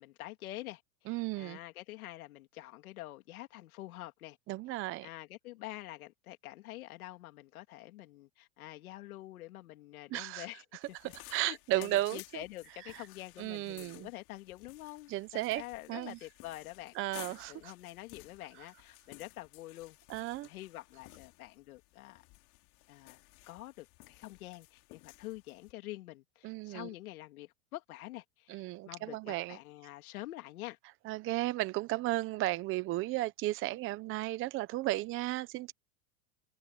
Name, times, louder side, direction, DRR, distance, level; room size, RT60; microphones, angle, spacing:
voice 1, 0.0-4.4 5.0-16.9 17.3-20.0 20.4-22.2 22.9-23.2 23.5-30.8, left 16 dB, 80° left, 2.9 m, -47 dB
voice 2, 1.1-1.6 4.5-5.1 10.1-10.5 11.0-12.4 12.9-13.0 13.4-14.1 15.1-15.6 15.9-16.2 17.0-17.7 20.1-20.5 26.4-26.9 28.5-29.6 31.0-35.7, right 17 dB, 30° right, 0.7 m, -34 dB
sound 1, 10.8-25.7, left 22 dB, 50° left, 2.8 m, -55 dB
supercardioid pair, 140°, 43 cm